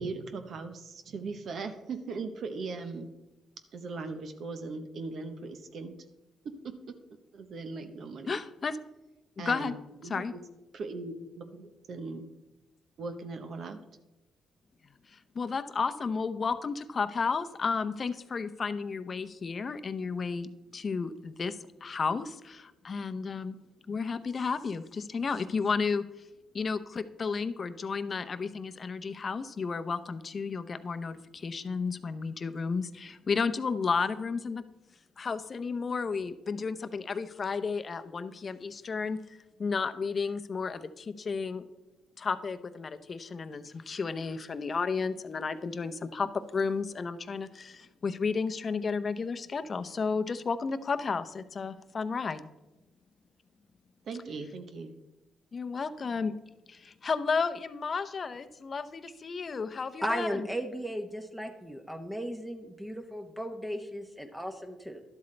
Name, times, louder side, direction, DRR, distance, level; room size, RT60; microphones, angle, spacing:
voice 1, 0.0-3.1 3.7-5.9 6.6-6.9 7.3-8.3 9.4-9.7 10.0-10.4 10.7-12.2 13.0-13.8 54.1-54.9, right 4 dB, 60° right, 8 dB, 0.9 m, -39 dB
voice 2, 8.3-8.8 9.4-9.7 10.1-10.3 15.1-23.6 23.9-26.0 26.5-34.6 35.2-39.2 39.6-41.6 42.2-52.5 55.5-56.3 56.7-60.5, left 5 dB, 40° left, 11 dB, 0.6 m, -32 dB
voice 3, 60.0-65.0, equal, 5° right, 5 dB, 0.9 m, -36 dB
11.5 x 7.9 x 3.3 m, 0.99 s
cardioid pair, 90°, 0 cm